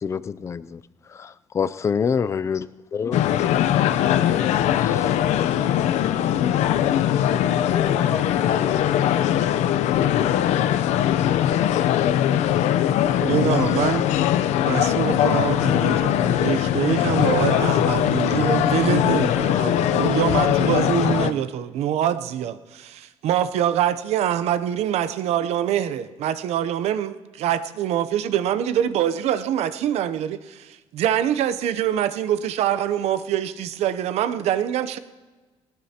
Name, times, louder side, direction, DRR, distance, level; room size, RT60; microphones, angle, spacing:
voice 1, 0.0-0.8 1.1-3.5 4.3-5.1 13.9-14.0, left 6 dB, 25° left, 0.4 m, -28 dB
sound 1, 3.1-21.3, left 11 dB, 80° left, 0.6 m, -21 dB
voice 2, 7.7-10.0, left 6 dB, 55° left, 1.6 m, -33 dB
voice 3, 13.2-14.1 14.6-35.0, right 10 dB, 65° right, 0.7 m, -24 dB
19.5 x 19.5 x 2.9 m
cardioid pair, 165°, 12 cm